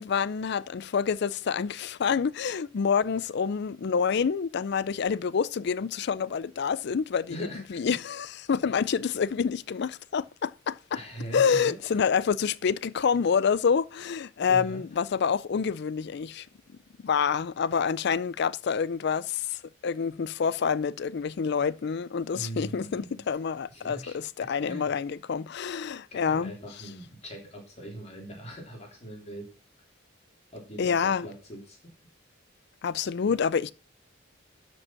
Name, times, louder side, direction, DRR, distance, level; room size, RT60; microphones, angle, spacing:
voice 1, 0.0-7.4 7.7-11.0 11.3-16.5 17.0-26.5 30.8-31.3 32.8-33.7, left 6 dB, 55° left, 0.4 m, -27 dB
voice 2, 7.2-7.8 10.9-11.8 14.5-14.8 22.3-23.2 23.7-24.9 26.1-29.5 30.5-31.8, right 1 dB, 35° left, 3.5 m, -41 dB
12.0 x 5.4 x 5.8 m
head